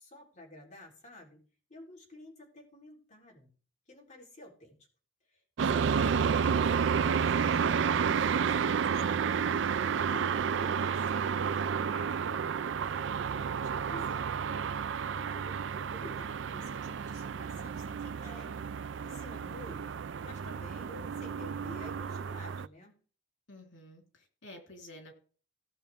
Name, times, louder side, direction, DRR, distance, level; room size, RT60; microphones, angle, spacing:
voice 1, 0.0-3.5 3.9-4.8 5.3-12.5 13.3-14.7 15.2-15.6 15.9-18.6 19.0-19.9 20.2-23.0, left 1 dB, 40° left, -2 dB, 3.9 m, -51 dB
sound 1, 5.6-22.7, right 6 dB, 70° right, 0.4 m, -31 dB
voice 2, 23.5-25.1, left 1 dB, 80° left, 1 dB, 3.8 m, -51 dB
18.0 x 7.4 x 3.6 m, 0.41 s
head